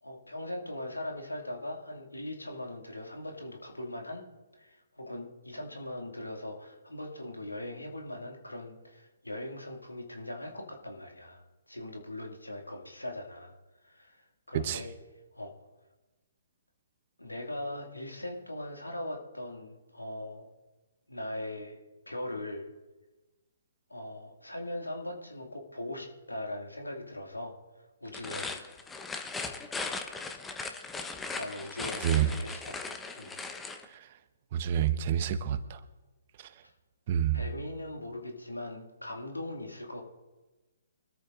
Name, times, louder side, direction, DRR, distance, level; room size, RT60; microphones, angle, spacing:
voice 1, 0.0-4.2 4.5-13.5 13.8-14.2 14.5-14.9 15.3-15.5 17.2-20.5 21.1-21.8 22.1-22.7 23.9-28.5 31.4-32.8 33.2-33.3 37.3-40.0, left 1 dB, 90° left, 1 dB, 2.3 m, -40 dB
sound 1, 28.1-33.9, left 4 dB, 10° left, 1.0 m, -38 dB
voice 2, 34.5-35.8 37.1-37.4, right 10 dB, 40° right, 11 dB, 1.0 m, -28 dB
24.0 x 13.5 x 2.6 m, 1.2 s
figure-of-eight pair, 130°, 0 cm